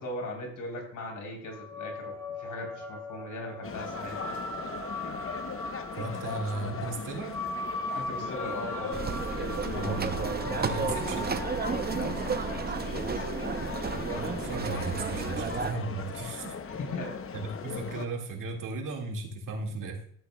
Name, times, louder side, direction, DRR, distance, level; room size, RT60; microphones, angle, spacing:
voice 1, 0.0-4.3 7.9-9.0 9.7-10.1 11.9-13.2 16.7-17.2, left 1 dB, 70° left, 0 dB, 3.5 m, -39 dB
sound 1, 1.5-16.2, left 1 dB, 10° left, 3.0 m, -40 dB
sound 2, 3.6-18.1, left 6 dB, 45° left, 0.8 m, -38 dB
voice 2, 6.0-7.4 9.7-10.1 10.4-11.3 14.1-16.5 17.6-20.0, right 3 dB, 80° right, 1 dB, 1.9 m, -35 dB
sound 3, 8.9-15.7, right 5 dB, 30° right, 0.6 m, -32 dB
13.5 x 8.6 x 2.2 m, 0.65 s
cardioid pair, 90°, 32 cm